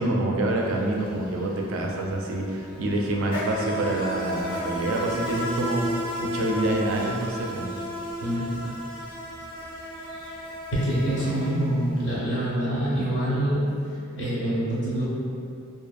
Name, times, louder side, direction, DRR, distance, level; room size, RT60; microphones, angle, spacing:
voice 1, 0.0-7.7 11.2-11.3, right 1 dB, 65° right, -1 dB, 0.3 m, -27 dB
Insect, 0.6-0.8 1.1-12.1, equal, 20° left, 0.5 m, -33 dB
voice 2, 8.2-8.7 10.7-15.1, right 1 dB, 55° left, -8 dB, 0.8 m, -26 dB
2.6 x 2.5 x 2.3 m, 2.5 s
head